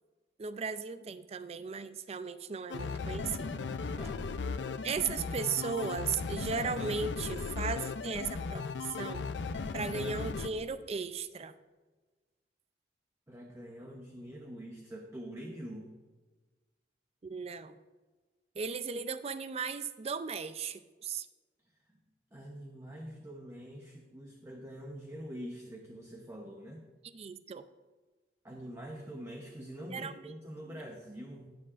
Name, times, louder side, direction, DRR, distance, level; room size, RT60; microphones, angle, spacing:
voice 1, 0.4-3.6 4.8-8.6 9.0-9.3 9.7-11.5 17.2-17.8 18.6-21.3 27.0-27.6 29.9-30.3 30.6-30.8, right 5 dB, 35° right, 13 dB, 0.4 m, -36 dB
sound 1, 2.7-10.5, left 4 dB, 80° left, 0.5 m, -37 dB
voice 2, 13.3-15.9 21.9-22.0 22.3-26.8 28.4-31.5, equal, 15° right, 0 dB, 0.8 m, -45 dB
18.0 x 6.7 x 2.5 m, 1.3 s
head